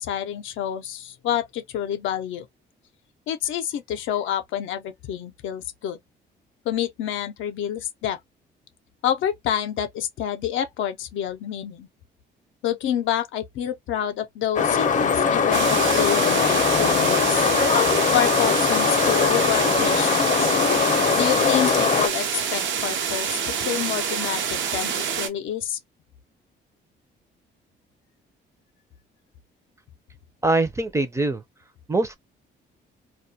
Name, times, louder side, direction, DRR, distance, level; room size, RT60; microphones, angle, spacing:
voice 1, 0.0-2.5 3.3-6.0 6.6-8.2 9.0-11.9 12.6-17.5 18.1-20.5 21.1-25.8, left 10 dB, 80° left, 0.5 m, -28 dB
sound 1, 14.6-22.1, left 6 dB, 40° left, 0.5 m, -21 dB
sound 2, 15.5-25.3, right 7 dB, 70° right, 0.6 m, -27 dB
voice 2, 30.4-31.4 31.9-32.2, right 2 dB, 15° right, 0.5 m, -23 dB
2.2 x 2.1 x 2.7 m
cardioid pair, 90°, 20 cm